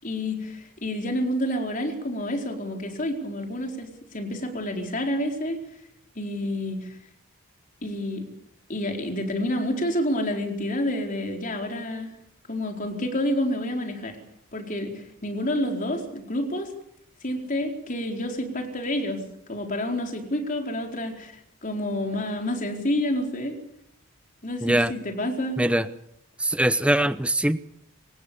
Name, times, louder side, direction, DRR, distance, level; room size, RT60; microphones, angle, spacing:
voice 1, 0.0-5.6 6.2-6.9 7.8-8.3 8.7-12.1 12.5-14.2 14.5-16.7 17.2-19.2 19.5-21.3 21.6-23.5 24.4-25.6, left 1 dB, 40° left, 3 dB, 4.5 m, -29 dB
voice 2, 24.6-24.9 25.6-25.9 26.4-27.6, right 1 dB, 5° right, 12 dB, 0.8 m, -22 dB
27.0 x 16.5 x 7.0 m, 0.75 s
head